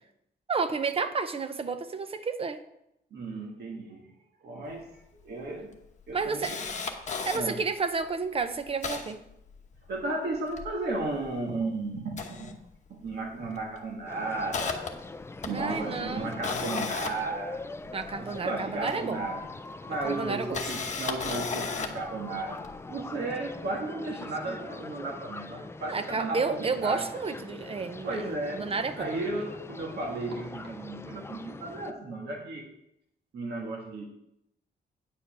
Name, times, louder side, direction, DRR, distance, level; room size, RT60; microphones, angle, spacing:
voice 1, 0.5-2.6 6.1-6.5 7.2-9.2 15.5-16.3 17.9-19.2 20.0-20.6 25.9-29.1, right 4 dB, 35° right, 9 dB, 0.7 m, -31 dB
voice 2, 3.1-4.1 4.4-5.7 6.1-6.6 7.3-7.6 9.9-12.5 12.9-14.9 15.4-17.6 18.2-19.5 19.9-22.6 22.9-27.1 28.0-28.7 29.0-32.7 33.3-34.1, right 2 dB, 65° right, 0 dB, 1.7 m, -34 dB
Camera, 4.8-4.9 5.2-5.3 5.8-7.4 8.0-8.1 8.4-10.0 10.4-11.6 12.0-13.2 13.4-13.7 14.1-18.2 19.2-19.3 20.3-22.1 22.6-22.8, left 5 dB, 45° left, 1.0 m, -35 dB
sound 1, 14.1-31.9, left 3 dB, 15° left, 0.4 m, -43 dB
9.7 x 5.0 x 6.9 m, 0.82 s
wide cardioid pair, 160°, 18 cm